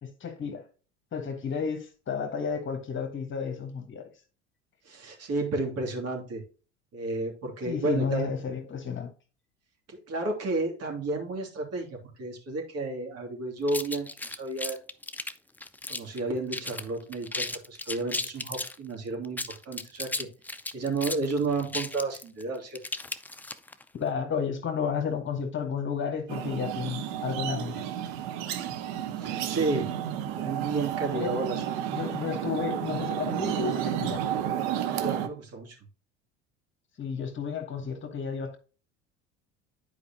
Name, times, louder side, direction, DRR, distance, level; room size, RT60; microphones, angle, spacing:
voice 1, 0.0-0.6 1.1-4.1 7.6-9.1 23.9-27.8 31.1-31.4 31.9-34.2 37.0-38.6, left 6 dB, 35° left, 1.5 m, -32 dB
voice 2, 4.9-6.4 6.9-8.3 9.9-14.8 15.9-20.3 20.7-22.8 29.1-29.9 30.3-31.8 34.9-35.8, right 3 dB, 45° right, 2.7 m, -32 dB
sound 1, 13.7-16.2 16.5-16.8 17.1-18.8 19.2-23.8, left 2 dB, 5° left, 0.5 m, -35 dB
sound 2, 26.3-35.3, right 10 dB, 60° right, 1.1 m, -31 dB
10.0 x 4.9 x 2.8 m
hypercardioid pair, 70°, 35 cm